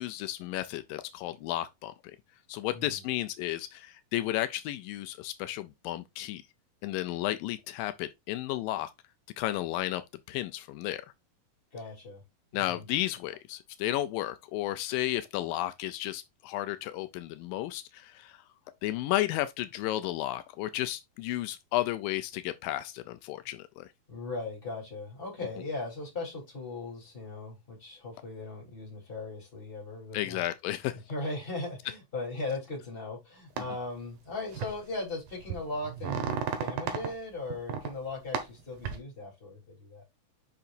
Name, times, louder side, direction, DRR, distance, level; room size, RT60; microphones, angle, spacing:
voice 1, 0.0-2.2 2.5-6.4 6.8-8.9 9.4-10.0 10.3-11.0 12.5-18.4 18.8-23.9 30.1-31.0, left 15 dB, 85° left, 2.3 m, -33 dB
voice 2, 11.7-12.2 12.5-12.8 24.1-30.4 31.1-40.0, left 2 dB, 15° left, 3.4 m, -38 dB
sound 1, 33.6-33.7 34.5-34.8 35.3-37.1 37.5-37.9 38.3-39.0, right 7 dB, 90° right, 3.0 m, -33 dB
8.5 x 5.9 x 2.6 m
omnidirectional pair, 4.0 m